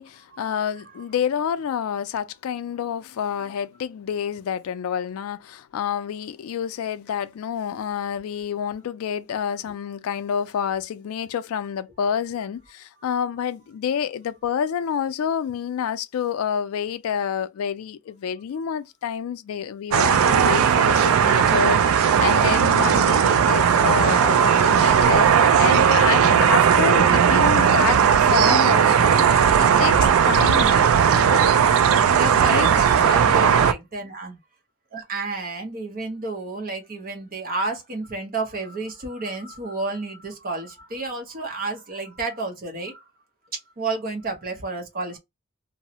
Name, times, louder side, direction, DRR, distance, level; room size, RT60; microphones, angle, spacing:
voice 1, 0.0-30.7 31.1-31.6 32.3-32.7 33.2-33.5, left 8 dB, 70° left, 0.3 m, -28 dB
sound 1, 19.9-33.7, right 7 dB, 70° right, 0.3 m, -17 dB
voice 2, 30.4-31.1 32.1-34.4 34.9-43.1 43.5-45.2, right 3 dB, 40° right, 0.8 m, -31 dB
3.0 x 2.0 x 2.7 m
head